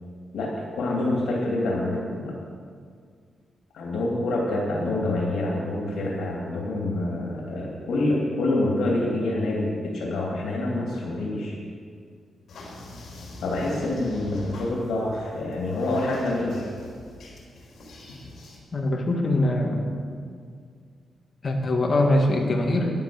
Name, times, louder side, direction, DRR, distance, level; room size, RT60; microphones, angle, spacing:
voice 1, 0.3-2.3 3.7-11.6 13.4-16.7, left 2 dB, 85° left, -3 dB, 2.6 m, -26 dB
sound 1, 12.5-18.6, left 2 dB, 65° left, 4.1 m, -44 dB
voice 2, 18.7-19.8 21.4-22.9, left 1 dB, 40° left, 2 dB, 1.9 m, -22 dB
11.0 x 10.5 x 7.1 m, 2.1 s
cardioid pair, 125°, 0 cm